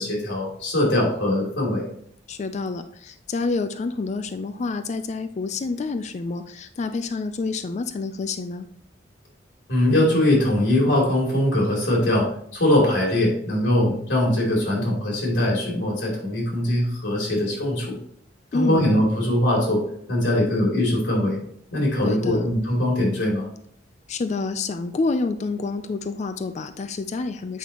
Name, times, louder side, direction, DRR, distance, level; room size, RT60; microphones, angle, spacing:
voice 1, 0.0-1.9 9.7-18.0 18.5-19.8 20.1-21.4 21.7-23.5, left 1 dB, 85° left, -3 dB, 2.9 m, -21 dB
voice 2, 2.3-8.7 18.5-18.9 22.0-22.5 24.1-27.6, left 3 dB, 40° left, 9 dB, 0.4 m, -28 dB
8.4 x 5.4 x 3.0 m, 0.66 s
head